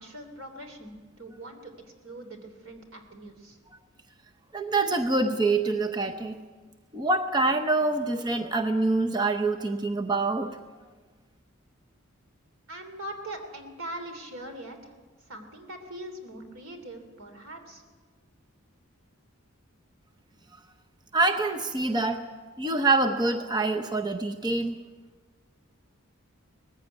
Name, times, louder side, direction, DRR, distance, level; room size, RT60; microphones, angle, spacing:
voice 1, 0.0-1.7 2.0-3.6 12.7-14.9 15.2-17.8, right 1 dB, 80° right, 5 dB, 3.1 m, -42 dB
voice 2, 4.5-6.4 6.9-10.6 21.1-22.2 22.6-24.8, right 2 dB, 20° right, 5 dB, 0.8 m, -25 dB
19.5 x 15.0 x 9.3 m, 1.4 s
head